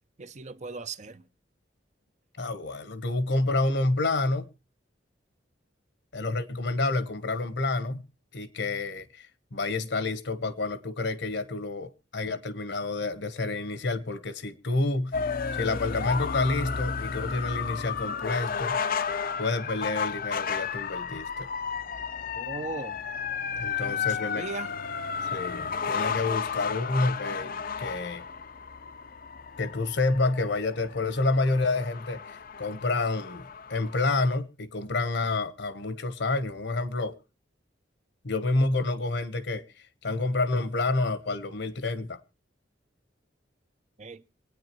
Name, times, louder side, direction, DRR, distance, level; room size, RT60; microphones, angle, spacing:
voice 1, 0.2-1.2 22.4-23.0 23.7-24.7 44.0-44.2, right 3 dB, 40° right, 0.7 m, -38 dB
voice 2, 2.4-4.5 6.1-8.0 8.3-15.2 15.5-18.8 19.4-21.5 23.6-24.5 25.3-28.2 29.6-37.2 38.2-42.2, left 2 dB, 70° left, 1.1 m, -29 dB
sound 1, 15.1-34.3, left 6 dB, 50° left, 0.6 m, -33 dB
26.5 x 9.5 x 3.1 m
head